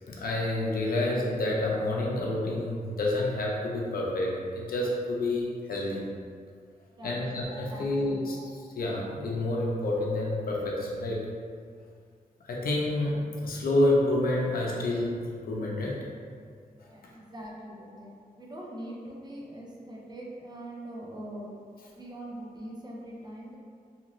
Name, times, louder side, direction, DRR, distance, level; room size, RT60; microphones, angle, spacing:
voice 1, 0.1-6.0 7.0-11.3 12.4-16.0, left 1 dB, 80° left, -3 dB, 0.6 m, -28 dB
voice 2, 6.9-7.3 7.7-8.1 16.9-21.5 21.9-23.6, right 1 dB, 30° right, -4 dB, 0.5 m, -42 dB
2.8 x 2.5 x 3.0 m, 2.1 s
wide cardioid pair, 175°, 15 cm